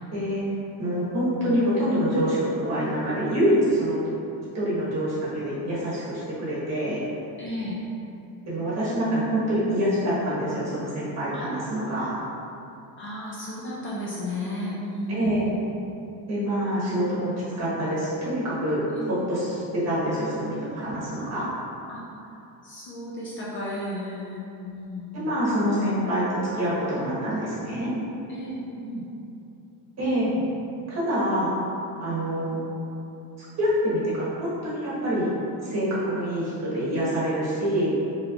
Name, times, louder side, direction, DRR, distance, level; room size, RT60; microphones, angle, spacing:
voice 1, 0.1-0.4 0.8-4.0 4.5-7.0 8.4-12.1 15.1-15.4 16.3-17.3 17.5-21.5 25.1-27.9 30.0-30.3 30.9-31.5 32.0-32.6 33.4-35.3 35.6-38.0, equal, 35° right, -9 dB, 1.2 m, -26 dB
voice 2, 7.4-7.8 11.3-11.5 13.0-15.4 18.9-19.0 20.5-21.3 21.9-22.4 22.6-25.4 28.3-29.0 30.3-30.4, left 1 dB, 30° left, -6 dB, 0.4 m, -34 dB
3.2 x 3.1 x 2.4 m, 2.8 s
cardioid pair, 140°, 43 cm